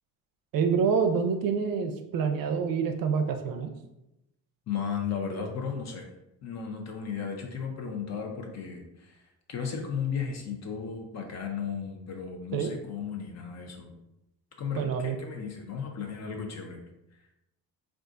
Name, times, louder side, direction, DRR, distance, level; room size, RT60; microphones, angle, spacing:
voice 1, 0.5-3.7 12.5-12.8 14.7-15.2, right 6 dB, 65° right, 6 dB, 0.5 m, -27 dB
voice 2, 4.7-6.1 6.4-13.9 14.6-16.8, left 6 dB, 45° left, 3 dB, 0.6 m, -35 dB
3.7 x 2.4 x 2.4 m, 0.89 s
cardioid pair, 130°, 37 cm